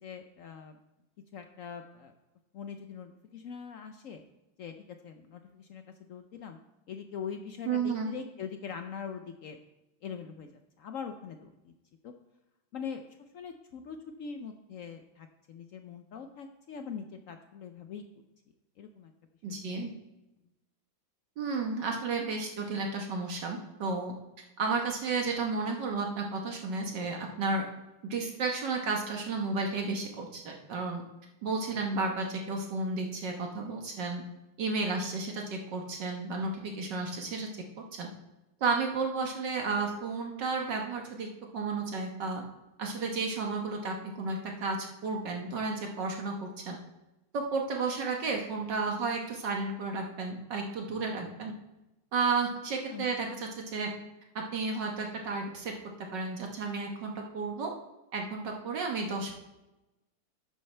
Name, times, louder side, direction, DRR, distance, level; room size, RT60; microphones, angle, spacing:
voice 1, 0.0-0.8 1.3-2.1 2.5-4.2 4.6-6.6 6.9-9.6 10.0-11.7 12.0-12.1 12.7-13.1 13.3-18.0 18.8-19.1 19.5-20.0 52.9-53.1 53.3-53.4, left 6 dB, 90° left, 6 dB, 0.7 m, -42 dB
voice 2, 7.7-8.1 19.4-19.9 21.4-24.1 24.6-27.6 28.0-31.0 31.4-34.2 34.6-37.5 37.9-38.1 38.6-41.3 41.5-42.4 42.8-46.8 47.3-51.5 52.1-53.9 54.3-55.7 56.0-57.7 58.1-59.3, right 4 dB, 65° right, 1 dB, 1.8 m, -32 dB
12.0 x 8.6 x 3.3 m, 0.98 s
omnidirectional pair, 2.1 m